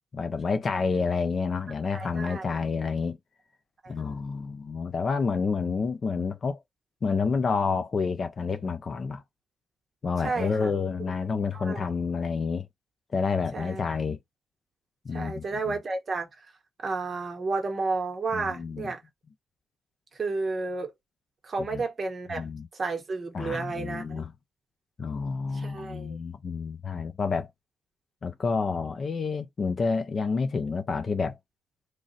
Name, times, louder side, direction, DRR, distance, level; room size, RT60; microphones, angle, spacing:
voice 1, 0.1-3.2 3.9-6.6 7.0-9.2 10.0-12.7 13.1-14.2 15.0-15.8 18.3-18.9 21.7-21.8 22.3-22.7 23.3-24.3 25.0-27.5 28.2-31.4, left 5 dB, 30° left, 0.4 m, -29 dB
voice 2, 1.9-2.6 3.8-4.2 10.2-10.7 11.5-11.8 13.5-13.8 15.1-16.3 16.8-19.0 20.2-20.9 21.4-22.5 22.7-24.2 25.5-26.2, right 3 dB, 30° right, 1.1 m, -32 dB
3.1 x 2.4 x 4.0 m
wide cardioid pair, 175°, 0 cm